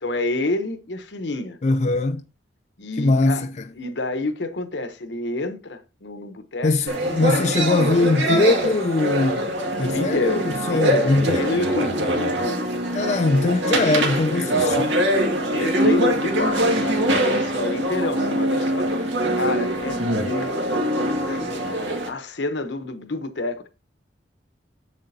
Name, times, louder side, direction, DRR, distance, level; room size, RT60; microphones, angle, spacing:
voice 1, 0.0-1.6 2.8-3.4 3.8-6.9 9.8-10.4 10.7-12.7 15.5-20.8 21.2-23.7, left 2 dB, 75° left, 1.0 m, -29 dB
voice 2, 1.6-2.2 3.0-3.5 6.6-9.5 9.8-11.5 12.9-15.0, left 2 dB, 40° left, 0.4 m, -21 dB
sound 1, 6.9-22.1, right 1 dB, 80° right, 2.0 m, -23 dB
7.6 x 7.4 x 2.8 m
head